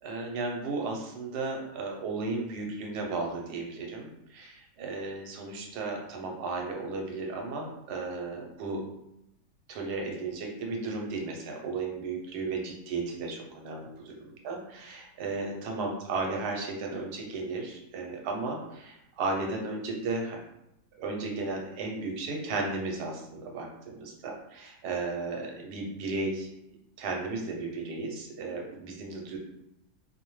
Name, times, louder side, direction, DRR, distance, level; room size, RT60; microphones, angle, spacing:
voice 1, 0.0-8.8 9.7-20.4 21.0-23.7 24.0-26.5 27.0-29.4, right 3 dB, 80° right, 1 dB, 1.2 m, -34 dB
2.6 x 2.1 x 3.0 m, 0.83 s
omnidirectional pair, 1.7 m